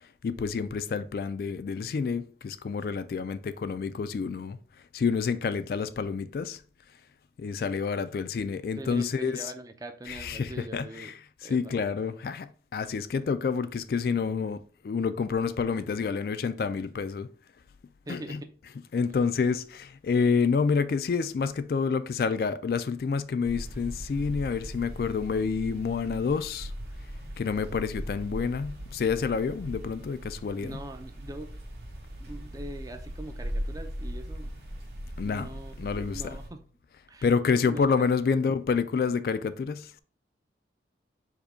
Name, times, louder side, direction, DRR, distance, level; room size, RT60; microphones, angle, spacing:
voice 1, 0.2-4.6 4.9-6.6 7.4-9.5 10.1-11.1 11.5-17.3 18.1-18.4 18.9-26.7 27.4-30.8 35.2-35.5 35.8-36.4 37.2-39.9, left 5 dB, 55° left, 0.3 m, -28 dB
voice 2, 8.8-11.1 11.4-11.8 18.1-18.5 30.6-31.5 32.2-34.5 35.2-35.8 36.1-36.7 37.1-37.3 37.7-38.4, right 1 dB, 20° right, 0.4 m, -42 dB
sound 1, 23.4-36.5, equal, 60° right, 1.2 m, -39 dB
4.8 x 2.2 x 4.8 m
head